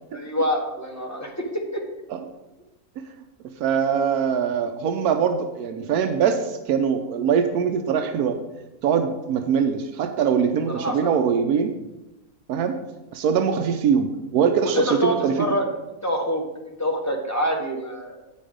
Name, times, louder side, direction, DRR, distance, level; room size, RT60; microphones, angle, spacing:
voice 1, 0.1-1.8 10.7-11.1 14.6-15.7 16.0-18.2, equal, 15° left, 0 dB, 1.0 m, -26 dB
voice 2, 3.6-8.4 8.8-11.7 12.5-12.8 13.1-15.3, right 7 dB, 85° right, 7 dB, 1.1 m, -22 dB
8.4 x 5.4 x 5.0 m, 0.99 s
omnidirectional pair, 1.6 m